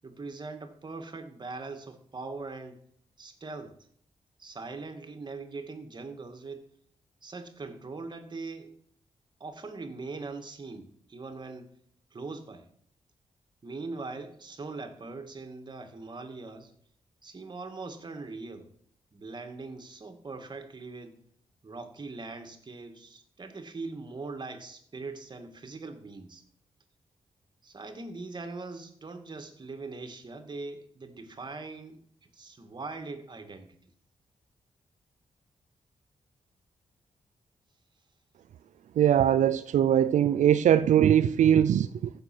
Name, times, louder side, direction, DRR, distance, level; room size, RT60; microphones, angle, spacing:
voice 1, 0.0-2.8 3.2-3.8 4.4-6.7 7.2-8.8 9.4-11.7 12.1-12.7 13.6-16.7 17.2-18.7 19.1-21.2 21.6-26.4 27.6-32.0 32.3-33.8, right 3 dB, 35° right, 2.0 m, -41 dB
voice 2, 39.0-42.1, right 10 dB, 80° right, 0.5 m, -21 dB
15.5 x 6.8 x 6.2 m
cardioid pair, 105°, 12 cm